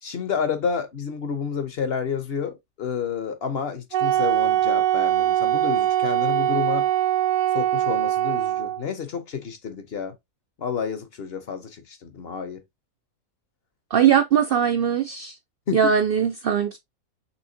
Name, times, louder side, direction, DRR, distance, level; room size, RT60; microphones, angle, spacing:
voice 1, 0.0-6.9 7.5-10.1 10.6-12.6 15.7-15.8, left 6 dB, 50° left, 0.9 m, -30 dB
Wind instrument woodwind instrument, 3.9-8.8, right 12 dB, 70° right, 1.0 m, -22 dB
voice 2, 13.9-15.4 15.7-16.8, right 8 dB, 90° right, 0.4 m, -20 dB
5.7 x 3.5 x 2.6 m
omnidirectional pair, 1.5 m